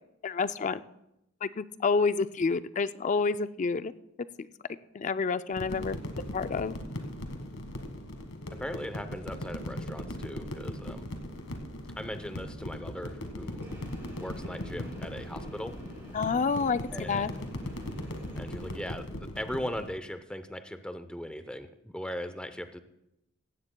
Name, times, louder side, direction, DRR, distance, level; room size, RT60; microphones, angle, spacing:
voice 1, 0.2-0.8 1.4-3.9 4.9-6.8 16.1-17.3, left 4 dB, 35° left, 13 dB, 0.4 m, -29 dB
sound 1, 5.5-19.9, left 1 dB, 85° left, 1.7 m, -39 dB
voice 2, 8.5-11.1 12.0-13.7 14.2-15.8 16.9-17.3 18.3-22.8, equal, 5° left, 9 dB, 0.7 m, -39 dB
Train, 13.6-18.9, equal, 10° right, 4.4 m, -48 dB
16.5 x 15.0 x 2.3 m, 0.86 s
head